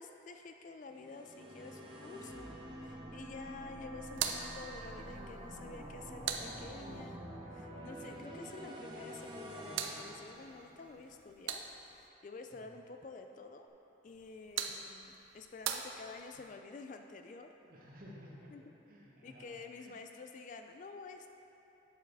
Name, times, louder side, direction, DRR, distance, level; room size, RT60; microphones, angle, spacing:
voice 1, 0.0-2.5 2.8-13.7 14.0-17.5 18.5-18.7 19.2-21.3, left 4 dB, 40° left, 5 dB, 0.3 m, -50 dB
sound 1, 0.9-11.1, right 1 dB, 25° right, 0.9 m, -47 dB
sound 2, 4.1-7.2 9.1-12.1 14.1-16.5, right 8 dB, 90° right, 0.5 m, -43 dB
voice 2, 17.6-18.5 18.9-19.9, equal, 45° right, -3 dB, 1.1 m, -55 dB
8.7 x 6.5 x 3.4 m, 2.9 s
head